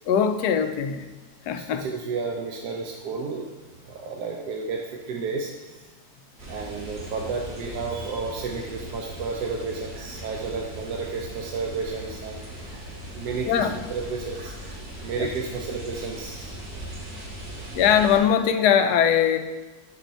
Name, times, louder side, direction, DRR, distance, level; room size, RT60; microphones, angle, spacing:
voice 1, 0.1-1.1 1.5-1.8 13.5-13.8 15.2-15.3 17.7-19.4, left 8 dB, 85° left, 7 dB, 1.1 m, -21 dB
voice 2, 1.7-3.5 3.8-5.8 6.5-12.4 13.1-14.5 15.0-16.5, right 4 dB, 85° right, 0 dB, 1.2 m, -32 dB
sound 1, 6.4-18.2, right 1 dB, 40° right, 1.9 m, -39 dB
5.7 x 4.9 x 3.9 m, 1.2 s
omnidirectional pair, 1.7 m